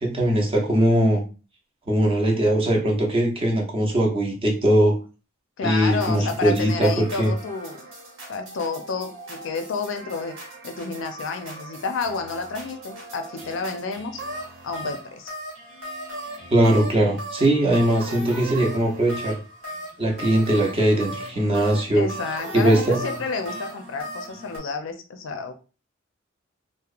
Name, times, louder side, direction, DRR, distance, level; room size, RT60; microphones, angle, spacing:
voice 1, 0.0-1.2 1.9-4.9 5.6-7.3 16.5-19.4 20.0-22.0 22.5-23.0, right 1 dB, 30° right, 0 dB, 0.6 m, -20 dB
voice 2, 5.6-7.9 8.3-10.4 10.6-14.2 14.6-15.3 21.9-25.5, left 4 dB, 70° left, 6 dB, 0.4 m, -30 dB
sound 1, 5.9-24.6, right 1 dB, 85° right, 1.1 m, -38 dB
2.8 x 2.0 x 2.4 m, 0.34 s
head